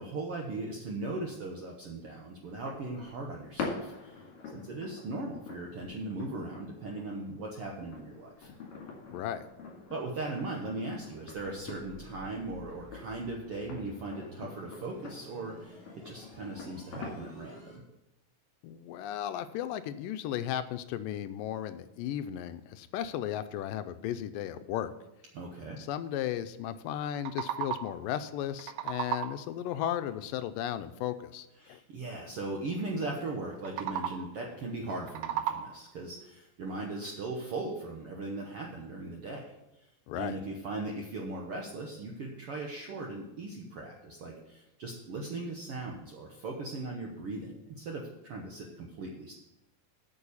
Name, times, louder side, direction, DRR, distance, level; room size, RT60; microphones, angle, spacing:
voice 1, 0.0-4.2 4.5-8.5 9.9-17.8 25.3-25.8 31.6-39.6 39.8-39.9 40.1-49.3, right 2 dB, 65° right, 0 dB, 1.5 m, -38 dB
sound 1, 2.4-17.5, left 4 dB, 60° left, 3.3 m, -45 dB
voice 2, 9.1-9.4 18.6-24.9 25.8-31.8 40.1-40.3, left 11 dB, 85° left, 11 dB, 2.2 m, -35 dB
sound 2, 11.3-17.8, left 1 dB, 15° left, 4.2 m, -52 dB
sound 3, 27.0-28.1 28.4-29.6 33.5-34.4 34.9-36.0, right 10 dB, 90° right, 2.5 m, -36 dB
8.7 x 6.9 x 7.0 m, 0.90 s
omnidirectional pair, 4.0 m